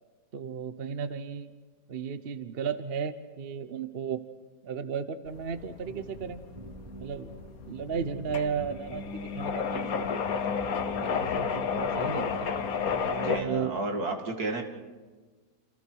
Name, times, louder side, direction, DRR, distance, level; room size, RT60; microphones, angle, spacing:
voice 1, 0.3-1.5 1.9-4.3 4.6-6.4 7.0-7.3 7.7-10.4 11.0-12.5 13.0-13.7, right 7 dB, 45° right, 11 dB, 0.9 m, -34 dB
sound 1, 5.3-13.4, left 6 dB, 60° left, 1.5 m, -32 dB
sound 2, 5.8-13.8, right 1 dB, 20° right, 2.4 m, -46 dB
voice 2, 13.1-14.6, right 2 dB, 65° right, 4 dB, 2.8 m, -32 dB
28.5 x 27.5 x 4.7 m, 1.4 s
omnidirectional pair, 1.7 m